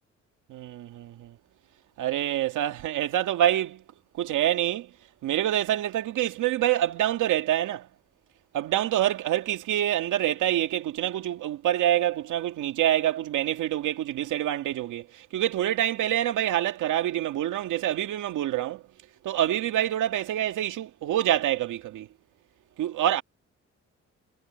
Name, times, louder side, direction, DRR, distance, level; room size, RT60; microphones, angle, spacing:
voice 1, 0.5-1.3 2.0-3.8 4.2-4.9 5.2-7.9 8.5-18.8 19.2-22.1 22.8-23.2, right 12 dB, 80° right, 2.3 m, -26 dB
cardioid pair, 90°, 30 cm